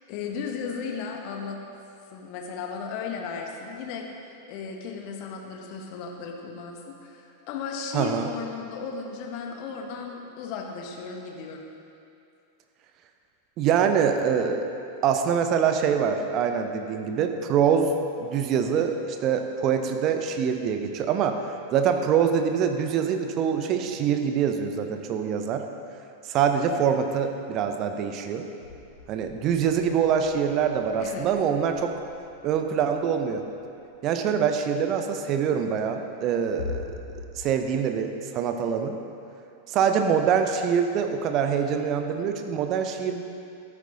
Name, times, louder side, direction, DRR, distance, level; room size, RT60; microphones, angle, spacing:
voice 1, 0.1-1.6 2.1-11.7 31.0-31.3, left 5 dB, 45° left, 1 dB, 1.5 m, -35 dB
voice 2, 7.9-8.3 13.6-14.6 15.0-17.9 18.2-21.4 21.7-25.6 26.2-28.5 29.1-31.9 32.4-33.4 34.0-36.9 37.4-39.0 39.7-43.2, right 7 dB, 35° right, 6 dB, 0.9 m, -24 dB
sound 1, 28.6-34.1 36.6-37.4, left 4 dB, 65° left, 2.5 m, -42 dB
13.0 x 9.7 x 4.0 m, 2.6 s
figure-of-eight pair, 90°, 0 cm